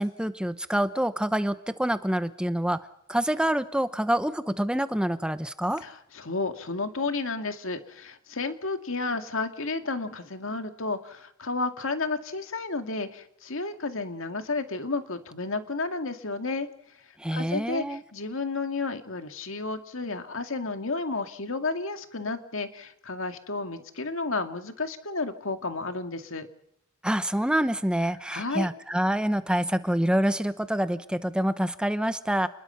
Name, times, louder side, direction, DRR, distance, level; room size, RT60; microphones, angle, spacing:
voice 1, 0.0-2.8 3.1-5.8 17.2-18.0 27.0-32.5, right 1 dB, 5° right, 11 dB, 0.9 m, -26 dB
voice 2, 5.8-16.7 17.0-26.5 28.3-28.7, left 3 dB, 70° left, 7 dB, 2.3 m, -32 dB
30.0 x 21.0 x 5.8 m, 0.76 s
head